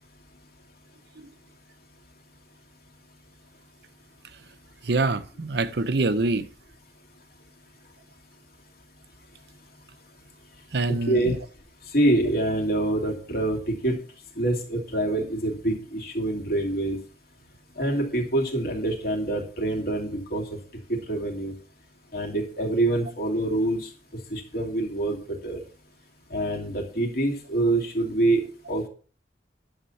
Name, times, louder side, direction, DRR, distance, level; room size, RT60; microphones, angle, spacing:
voice 1, 4.8-6.5 10.7-11.4, right 3 dB, 65° right, 12 dB, 0.8 m, -25 dB
voice 2, 10.9-11.3 11.9-14.0 14.4-17.0 17.8-20.4 20.9-21.5 22.1-23.9 24.3-25.6 26.3-28.4 28.7-28.9, right 1 dB, 55° left, 1 dB, 2.7 m, -25 dB
11.0 x 7.3 x 4.2 m, 0.40 s
head